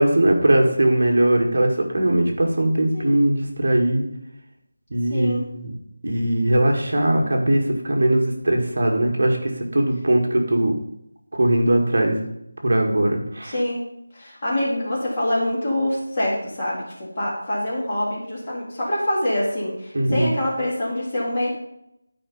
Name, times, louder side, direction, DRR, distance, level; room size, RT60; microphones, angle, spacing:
voice 1, 0.0-4.0 4.9-5.7 6.0-10.8 11.3-12.2 12.6-13.5 19.9-20.3, right 1 dB, 50° right, 2 dB, 1.8 m, -20 dB
voice 2, 2.9-3.2 5.1-5.5 13.4-13.8 14.1-21.5, left 1 dB, 20° left, -6 dB, 2.3 m, -25 dB
12.0 x 4.9 x 5.4 m, 0.79 s
figure-of-eight pair, 180°, 0 cm